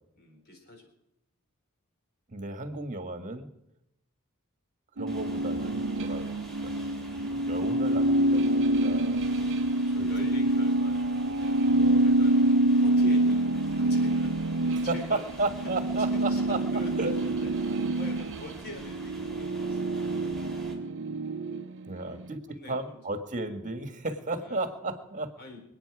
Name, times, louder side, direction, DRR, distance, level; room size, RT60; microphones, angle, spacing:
voice 1, 0.1-0.9 2.7-2.8 9.7-11.1 11.3-11.7 12.0-12.4 12.7-14.4 14.6-15.3 15.6-15.7 16.0-20.2 22.0-23.0 23.9-24.1 24.4-24.7 25.4-25.6, left 1 dB, 45° left, 3 dB, 4.1 m, -45 dB
voice 2, 2.3-3.5 5.0-6.3 6.8-7.0 7.3-9.7 11.7-12.1 14.7-16.6 17.0-17.1 21.9-22.4 22.7-25.3, right 2 dB, 35° right, 8 dB, 1.7 m, -34 dB
sound 1, 5.0-22.2, right 1 dB, 55° right, 0.7 m, -26 dB
sound 2, 5.1-20.7, right 1 dB, ahead, 3.3 m, -48 dB
26.5 x 9.3 x 4.8 m, 0.85 s
head